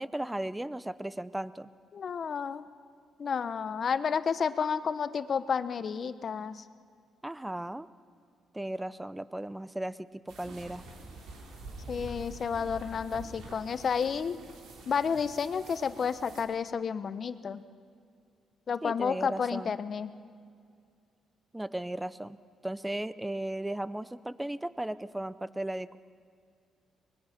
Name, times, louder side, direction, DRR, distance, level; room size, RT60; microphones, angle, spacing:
voice 1, 0.0-1.7 7.2-7.9 8.5-10.8 18.8-19.7 21.5-22.4 22.6-26.0, right 1 dB, 10° right, 16 dB, 0.7 m, -36 dB
voice 2, 1.9-2.6 3.2-6.6 11.9-14.4 14.9-17.6 18.7-20.1, left 6 dB, 50° left, 13 dB, 0.9 m, -31 dB
sound 1, 10.3-16.4, right 2 dB, 85° right, 3.5 m, -46 dB
24.0 x 20.5 x 5.9 m, 2.3 s
cardioid pair, 90°, 0 cm